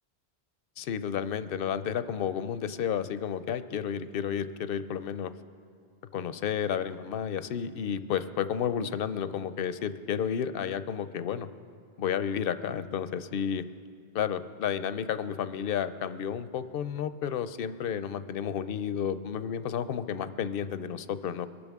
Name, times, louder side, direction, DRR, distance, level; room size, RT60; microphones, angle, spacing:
voice 1, 0.8-5.3 6.1-11.5 12.0-13.6 14.1-21.5, left 8 dB, 65° left, 13 dB, 0.7 m, -31 dB
22.5 x 12.5 x 3.6 m, 2.2 s
omnidirectional pair, 1.1 m